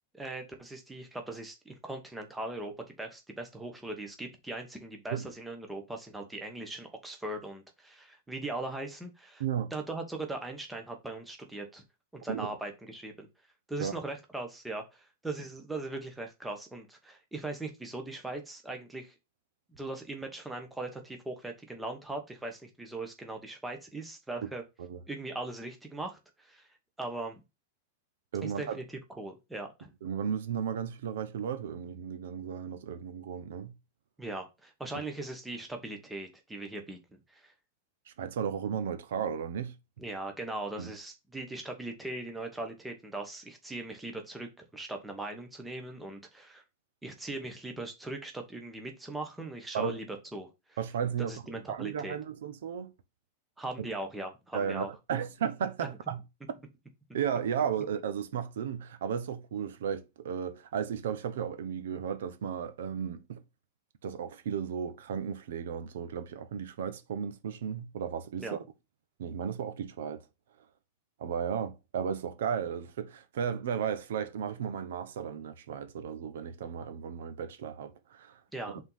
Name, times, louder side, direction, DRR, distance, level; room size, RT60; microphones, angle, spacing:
voice 1, 0.1-2.7 3.0-9.4 9.7-11.8 12.1-13.3 13.7-19.1 19.7-24.6 25.1-26.7 27.0-27.4 28.4-28.8 29.2-29.9 34.2-37.0 37.3-37.5 40.0-46.6 47.0-50.8 51.2-52.2 53.6-54.9 55.8-55.9 68.4-68.6 78.5-78.8, right 2 dB, 5° right, 1.1 m, -39 dB
voice 2, 9.4-9.7 12.3-12.5 13.8-13.9 24.8-25.0 28.3-28.8 30.0-33.7 38.2-39.7 40.8-40.9 49.7-50.0 50.8-52.9 54.5-56.2 57.1-63.4 64.0-68.6 69.2-70.2 71.2-78.4 78.7-78.8, right 7 dB, 70° right, 1.0 m, -34 dB
5.3 x 4.0 x 5.6 m
supercardioid pair, 175°, 0 cm